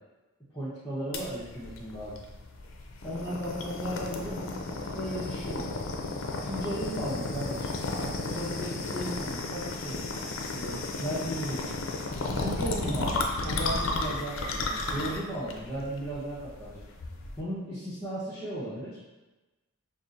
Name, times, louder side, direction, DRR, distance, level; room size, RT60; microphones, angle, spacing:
voice 1, 0.5-2.2 3.0-5.9 6.4-7.7 8.0-10.0 10.5-11.9 12.2-16.8 17.4-19.0, right 1 dB, 5° left, -13 dB, 0.7 m, -36 dB
sound 1, 1.1-17.4, left 3 dB, 65° left, 0.4 m, -34 dB
5.2 x 2.4 x 2.5 m, 1.1 s
head